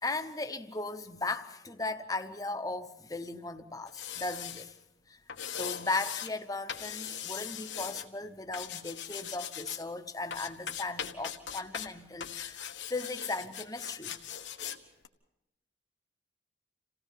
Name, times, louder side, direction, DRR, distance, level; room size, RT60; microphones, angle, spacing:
voice 1, 0.0-4.7 5.1-5.2 5.5-12.6 12.9-14.2, left 3 dB, 20° left, 8 dB, 0.9 m, -37 dB
sound 1, 3.9-4.6 5.3-6.3 6.7-8.0 8.5-9.8 10.3-11.9 12.2-14.8 15.0-15.1, left 9 dB, 75° left, 1.3 m, -40 dB
28.0 x 17.0 x 5.7 m, 0.90 s
head